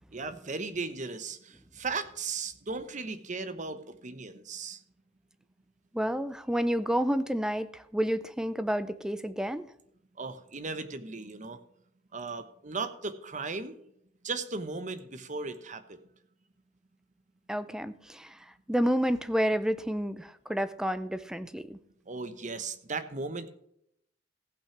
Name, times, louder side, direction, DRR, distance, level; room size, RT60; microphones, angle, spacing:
voice 1, 0.1-4.8 10.2-11.6 12.1-13.8 14.2-16.0 22.1-23.5, right 4 dB, 45° right, 10 dB, 1.0 m, -36 dB
voice 2, 5.9-9.7 17.5-21.8, equal, 5° right, 13 dB, 0.5 m, -30 dB
15.5 x 5.8 x 5.9 m, 0.73 s
head